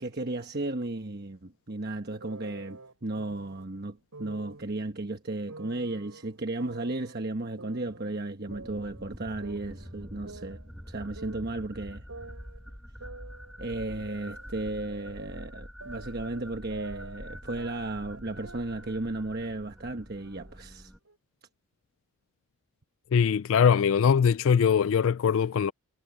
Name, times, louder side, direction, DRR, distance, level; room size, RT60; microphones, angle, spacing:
voice 1, 0.0-10.6 10.9-12.1 13.6-20.9, right 2 dB, 45° right, 1.1 m, -34 dB
sound 1, 2.2-3.6 4.1-4.6 5.5-7.1 7.6-9.1 9.4-11.7 12.1-14.5 14.9-19.0 19.3-19.7 20.2-21.2, right 3 dB, 85° right, 5.2 m, -48 dB
sound 2, 8.5-21.0, equal, ahead, 6.0 m, -46 dB
voice 2, 23.1-25.7, left 7 dB, 60° left, 0.3 m, -22 dB
head